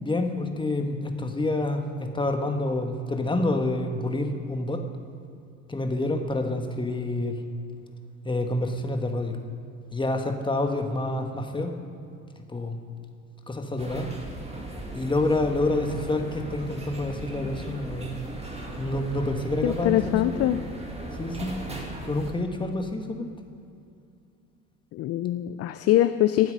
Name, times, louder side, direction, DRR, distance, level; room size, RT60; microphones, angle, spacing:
voice 1, 0.0-4.8 5.7-7.4 8.2-9.4 9.9-11.7 12.5-12.8 13.5-14.1 14.9-18.1 18.8-20.2 21.2-21.5 22.0-23.3, left 2 dB, 10° left, 5 dB, 1.6 m, -28 dB
sound 1, 13.8-22.3, right 1 dB, 15° right, 2.2 m, -37 dB
voice 2, 19.6-20.6 24.9-26.5, left 13 dB, 40° left, 11 dB, 0.5 m, -23 dB
19.0 x 7.9 x 5.4 m, 2.5 s
hypercardioid pair, 65°, 40 cm